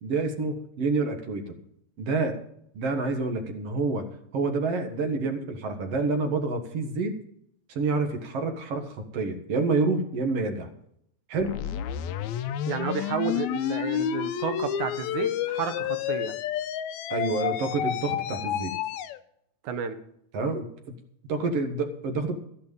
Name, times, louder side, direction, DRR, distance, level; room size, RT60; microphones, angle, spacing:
voice 1, 0.0-1.5 2.0-2.3 2.8-4.1 4.3-7.1 7.7-10.7 11.3-11.5 17.1-18.7 20.3-20.7 21.3-22.4, right 3 dB, 60° right, 5 dB, 2.5 m, -28 dB
sound 1, 11.4-19.2, left 10 dB, 80° left, 2.0 m, -30 dB
voice 2, 12.7-16.4 19.6-20.0, right 7 dB, 85° right, 9 dB, 2.7 m, -31 dB
13.5 x 10.5 x 5.4 m, 0.71 s
omnidirectional pair, 3.3 m